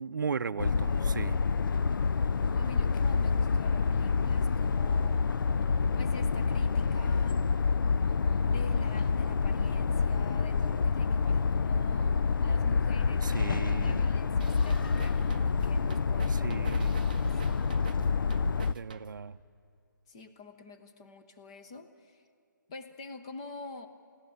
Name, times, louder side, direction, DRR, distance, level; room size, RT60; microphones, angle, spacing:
voice 1, 0.0-1.4 13.2-14.1 16.3-17.0 18.7-19.4, right 5 dB, 70° right, 11 dB, 0.6 m, -36 dB
sound 1, 0.6-18.7, left 5 dB, 85° left, 0.4 m, -27 dB
voice 2, 2.6-5.5 5.9-7.5 8.5-16.6 17.2-17.7 20.1-22.2 22.7-23.9, left 3 dB, 15° left, 7 dB, 0.7 m, -47 dB
sound 2, 14.4-19.4, right 5 dB, 25° right, 0.5 m, -44 dB
22.5 x 16.0 x 8.8 m, 2.5 s
hypercardioid pair, 175°, 11 cm